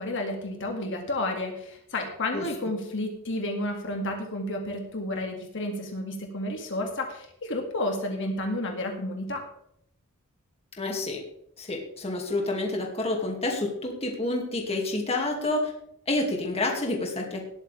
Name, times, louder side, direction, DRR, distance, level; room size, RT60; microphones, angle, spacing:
voice 1, 0.0-9.4, left 1 dB, 60° left, 3 dB, 2.2 m, -31 dB
voice 2, 10.8-11.2 11.6-15.7 16.1-17.5, left 2 dB, 30° left, 0 dB, 2.2 m, -28 dB
19.0 x 8.5 x 3.4 m, 0.72 s
head